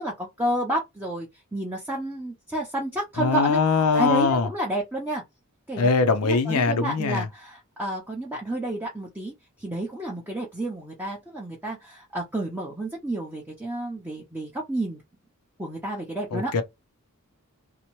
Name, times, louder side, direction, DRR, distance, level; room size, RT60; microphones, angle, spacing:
voice 1, 0.0-3.6 3.9-5.2 5.7-5.9 6.2-15.0 15.6-16.5, right 1 dB, 10° right, 0.5 m, -30 dB
voice 2, 3.2-4.5 5.8-7.3 16.3-16.6, left 4 dB, 75° left, 0.5 m, -22 dB
2.7 x 2.0 x 2.9 m
head